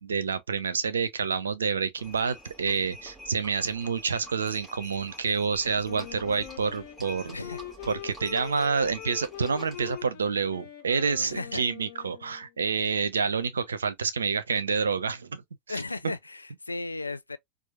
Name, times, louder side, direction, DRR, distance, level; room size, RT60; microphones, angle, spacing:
voice 1, 0.0-7.4 7.9-15.4 15.7-15.8 16.0-16.1, right 5 dB, 70° right, 0.5 m, -28 dB
Livestock farm animals working animals, 2.0-10.1, left 1 dB, 10° right, 2.4 m, -47 dB
Wind instrument woodwind instrument, 5.8-12.5, left 14 dB, 50° left, 0.8 m, -43 dB
voice 2, 7.3-7.6 11.2-11.6 15.7-17.4, left 3 dB, 80° left, 0.4 m, -35 dB
4.4 x 2.3 x 2.5 m
figure-of-eight pair, 90°, 0 cm